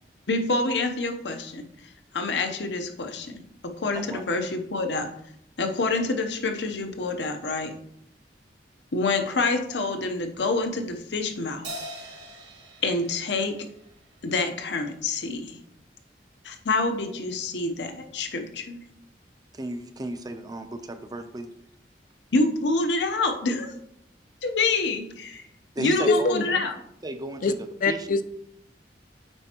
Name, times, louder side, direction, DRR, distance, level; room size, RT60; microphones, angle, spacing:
voice 1, 0.3-1.7 2.1-5.1 5.6-7.7 8.9-11.7 12.8-13.7 14.2-15.6 16.4-18.8 22.3-23.8 24.4-25.4 25.8-26.7, left 3 dB, 75° left, 6 dB, 0.8 m, -27 dB
Crash cymbal, 11.6-14.3, right 1 dB, 70° right, 1.9 m, -41 dB
voice 2, 19.5-21.5 25.8-26.3 27.0-27.6 27.9-28.2, right 1 dB, 20° right, 8 dB, 0.5 m, -34 dB
voice 3, 26.1-26.4 27.4-27.5 27.8-28.2, left 3 dB, 50° left, 11 dB, 0.4 m, -22 dB
8.9 x 4.4 x 2.9 m, 0.74 s
head